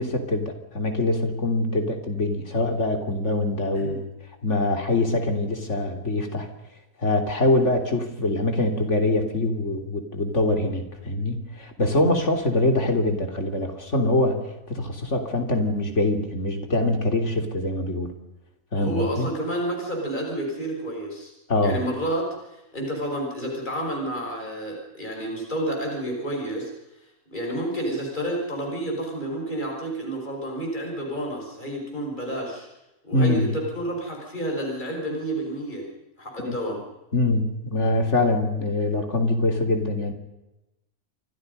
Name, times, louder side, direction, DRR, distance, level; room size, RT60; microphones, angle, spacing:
voice 1, 0.0-4.0 4.4-6.5 7.0-14.4 14.7-18.1 18.7-19.3 21.5-21.8 33.1-33.5 36.4-36.6 37.1-40.1, left 2 dB, 60° left, 5 dB, 3.5 m, -24 dB
voice 2, 18.8-21.3 21.6-26.7 27.3-32.7 33.0-35.9 36.2-36.8, right 1 dB, 35° left, 0 dB, 5.9 m, -30 dB
28.0 x 24.5 x 5.5 m, 0.94 s
omnidirectional pair, 1.4 m